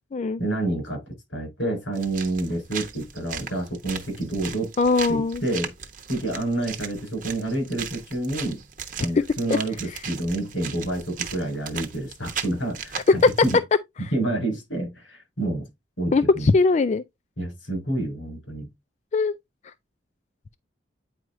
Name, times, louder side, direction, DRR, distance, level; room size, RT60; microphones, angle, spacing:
voice 1, 0.4-4.7 5.1-5.7 6.1-8.6 9.0-13.6 14.1-15.7 16.0-16.5 17.4-18.7, right 2 dB, 85° left, 5.4 m, -28 dB
sound 1, 1.9-13.6, right 7 dB, 45° right, 0.9 m, -37 dB
voice 2, 4.8-5.4 13.2-13.3 14.0-14.1 16.1-17.0 19.1-19.3, left 3 dB, 35° left, 0.3 m, -20 dB
9.1 x 4.7 x 2.6 m
head